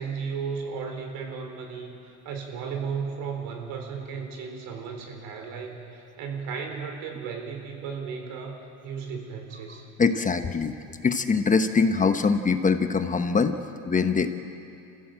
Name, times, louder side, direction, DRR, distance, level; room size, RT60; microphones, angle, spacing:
voice 1, 0.0-9.8, right 5 dB, 75° right, 3 dB, 4.3 m, -35 dB
voice 2, 10.0-10.7 11.0-13.5 13.9-14.4, left 5 dB, 25° left, 8 dB, 1.1 m, -23 dB
26.5 x 15.5 x 7.8 m, 2.7 s
supercardioid pair, 110°, 34 cm